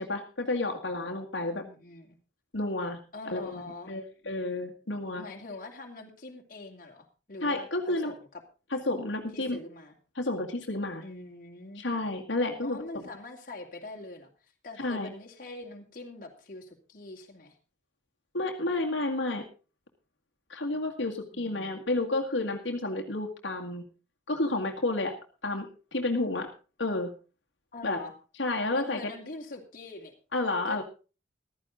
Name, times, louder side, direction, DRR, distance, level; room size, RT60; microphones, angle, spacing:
voice 1, 0.0-1.6 2.5-3.0 3.3-3.6 3.9-5.2 7.4-8.1 8.7-9.6 10.2-11.0 11.8-13.0 14.8-15.1 18.3-19.4 20.5-23.8 24.3-25.2 25.4-26.5 26.8-27.1 27.8-28.0 28.4-29.1 30.3-30.8, left 2 dB, 75° left, 2 dB, 2.1 m, -30 dB
voice 2, 1.5-2.2 3.1-3.9 5.2-8.4 9.3-10.0 11.0-11.8 12.6-17.6 21.3-21.8 27.7-28.1 28.7-30.1 30.6-30.8, left 2 dB, 45° left, 1 dB, 2.4 m, -43 dB
14.5 x 13.5 x 3.8 m, 0.33 s
head